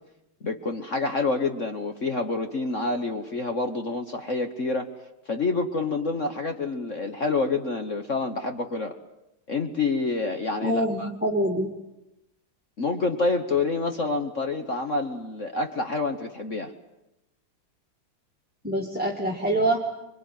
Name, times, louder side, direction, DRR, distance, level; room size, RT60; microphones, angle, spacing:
voice 1, 0.4-4.9 5.3-9.0 9.5-11.1 12.8-16.7, left 3 dB, 40° left, 6 dB, 1.3 m, -27 dB
voice 2, 10.6-11.7 18.6-19.8, right 1 dB, 5° right, -2 dB, 2.0 m, -25 dB
25.5 x 23.0 x 9.3 m, 0.92 s
omnidirectional pair, 2.3 m